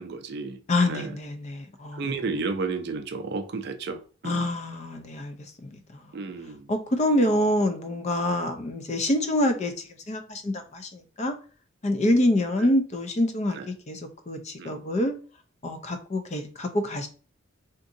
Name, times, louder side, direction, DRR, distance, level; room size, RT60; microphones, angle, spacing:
voice 1, 0.0-1.2 1.9-4.5 6.1-6.7 12.6-12.7 13.5-13.7 14.6-14.8, right 4 dB, 55° right, 0.4 m, -33 dB
voice 2, 0.7-2.1 4.2-5.3 5.6-6.2 6.7-9.7 10.1-11.3 11.8-14.0 14.3-15.1 15.6-17.1, left 1 dB, 35° left, 0.4 m, -26 dB
3.8 x 2.5 x 2.6 m
head